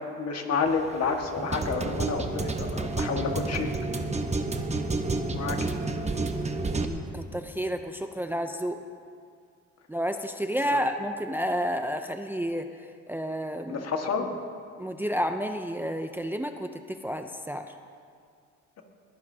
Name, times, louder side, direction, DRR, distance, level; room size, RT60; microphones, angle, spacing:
voice 1, 0.0-3.7 5.3-5.7 10.7-10.8 13.7-14.4, left 5 dB, 55° left, 3 dB, 1.7 m, -29 dB
sound 1, 0.7-6.8, right 3 dB, 20° right, 1.0 m, -30 dB
voice 2, 6.8-8.8 9.9-12.7 13.1-13.9 14.8-17.7, equal, 5° right, 6 dB, 0.6 m, -30 dB
21.5 x 15.0 x 2.8 m, 2.2 s
cardioid pair, 90°, 30 cm